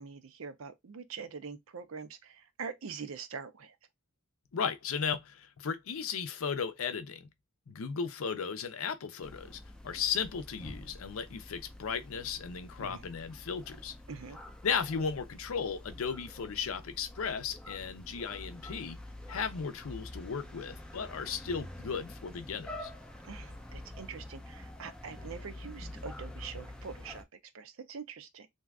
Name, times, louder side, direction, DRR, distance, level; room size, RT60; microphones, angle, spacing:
voice 1, 0.0-3.8 12.8-13.1 14.1-14.4 23.2-27.3 27.5-28.5, right 5 dB, 70° right, 0.5 m, -44 dB
voice 2, 4.5-7.3 7.7-13.9 14.6-19.0 19.3-22.9, left 6 dB, 75° left, 0.5 m, -35 dB
sound 1, 9.2-27.2, left 1 dB, 5° left, 0.4 m, -47 dB
sound 2, 23.2-23.8 25.2-27.2, left 2 dB, 30° left, 0.8 m, -62 dB
2.7 x 2.4 x 3.4 m
head